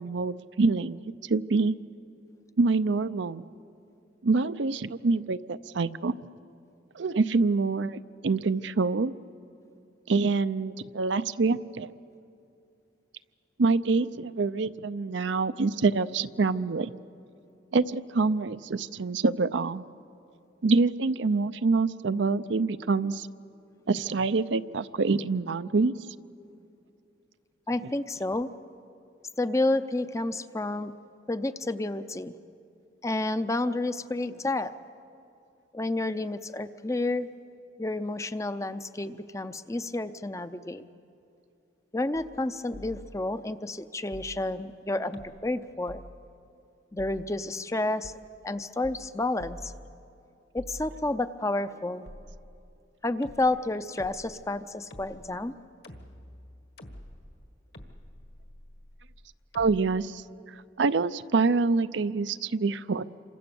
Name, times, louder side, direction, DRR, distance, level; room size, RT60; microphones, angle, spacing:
voice 1, 0.0-1.7 2.6-3.4 4.2-6.2 7.0-9.1 10.1-11.9 13.6-16.9 17.7-19.8 20.6-23.3 23.9-26.0 27.8-27.9 59.5-60.2 60.8-63.0, right 4 dB, 75° right, 13 dB, 0.6 m, -26 dB
voice 2, 27.7-28.5 29.4-30.9 31.3-32.3 33.0-34.7 35.7-37.3 37.8-40.8 41.9-46.0 46.9-48.1 48.4-49.7 50.5-52.1 53.0-55.5, left 2 dB, 15° left, 11 dB, 0.5 m, -30 dB
sound 1, 42.1-42.4 42.7-43.5 44.1-44.8 45.1-45.6 45.9-46.5 47.0-47.6 48.0-48.2 48.8-49.1 49.4-50.2 50.6-51.4 52.1-52.8 53.2-59.8, equal, 60° left, 1.7 m, -48 dB
27.5 x 25.0 x 7.0 m, 2.7 s
head